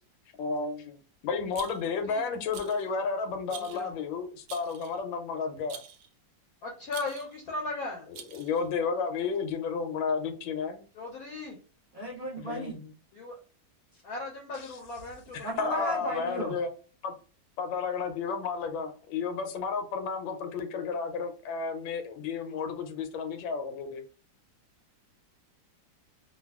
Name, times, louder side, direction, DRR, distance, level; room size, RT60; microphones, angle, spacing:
voice 1, 0.4-1.0 1.2-5.8 8.3-10.8 12.4-12.8 14.5-14.7 15.3-16.7 17.0-17.1 17.6-24.0, left 5 dB, 90° left, 1.4 m, -32 dB
Rattle, 1.5-2.0 2.5-2.9 3.5-3.9 4.5-5.0 5.7-6.1 6.9-7.4 8.1-8.7, right 8 dB, 75° right, 0.9 m, -46 dB
voice 2, 3.5-3.9 6.6-8.1 10.9-11.6 13.1-13.4 14.0-15.5 16.0-16.1, left 3 dB, 70° left, 0.9 m, -37 dB
voice 3, 11.9-12.8 13.9-14.0 15.4-16.6, right 1 dB, 55° right, 0.5 m, -35 dB
3.3 x 2.2 x 2.3 m
omnidirectional pair, 2.0 m